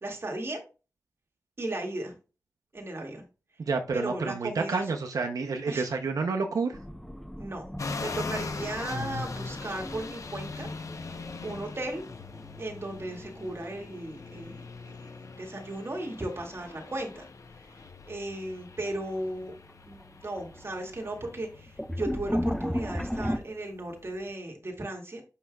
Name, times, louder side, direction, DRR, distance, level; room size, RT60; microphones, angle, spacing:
voice 1, 0.0-0.6 1.6-2.1 2.7-3.2 3.9-4.8 5.7-5.9 7.4-7.7 8.0-10.7 11.4-12.0 12.6-17.3 18.1-19.5 19.8-25.2, right 1 dB, 45° right, 0 dB, 2.2 m, -36 dB
voice 2, 3.6-6.8, right 4 dB, 90° right, 4 dB, 0.7 m, -29 dB
sound 1, 6.7-13.6 13.8-14.7 16.4-16.7 17.3-17.4 18.4-18.5 18.8-19.3 19.7-23.4, equal, ahead, 0.6 m, -36 dB
sound 2, 7.8-24.3, left 4 dB, 65° left, 0.8 m, -41 dB
8.4 x 5.6 x 2.3 m, 0.32 s
wide cardioid pair, 80°, 6 cm